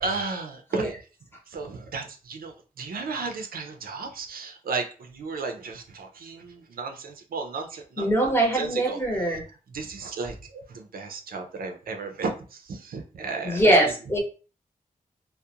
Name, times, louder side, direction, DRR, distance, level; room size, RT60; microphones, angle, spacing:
voice 1, 0.0-1.0 1.5-9.0 9.3-9.4 9.7-13.9, right 4 dB, 80° right, 4 dB, 0.4 m, -34 dB
voice 2, 8.0-9.4 13.4-14.2, right 1 dB, 15° left, 0 dB, 0.7 m, -22 dB
2.4 x 2.0 x 2.7 m, 0.37 s
wide cardioid pair, 125°, 15 cm